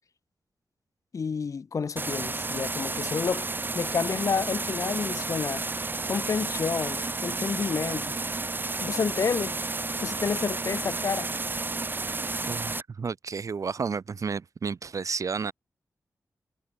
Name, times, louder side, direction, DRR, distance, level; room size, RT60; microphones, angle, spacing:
voice 1, 1.1-3.5 3.7-5.6 6.1-8.2 8.8-9.6 10.0-11.3, left 5 dB, 60° left, 4.3 m, -29 dB
sound 1, 2.0-12.8, right 3 dB, 35° right, 2.5 m, -31 dB
voice 2, 12.5-15.5, right 5 dB, 60° right, 4.7 m, -32 dB
cardioid pair, 80°, 6 cm